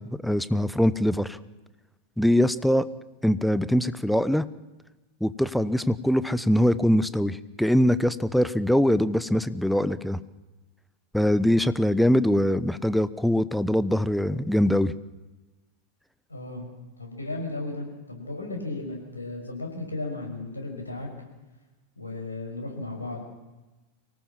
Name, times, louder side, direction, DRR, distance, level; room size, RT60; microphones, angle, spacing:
voice 1, 0.0-1.4 2.2-2.8 3.2-4.4 5.2-10.2 11.1-14.9, equal, ahead, 15 dB, 0.9 m, -23 dB
voice 2, 16.3-16.7 17.0-21.1 22.0-23.2, left 2 dB, 80° left, 2 dB, 5.8 m, -35 dB
24.5 x 18.5 x 7.4 m, 1.1 s
figure-of-eight pair, 90°, 0 cm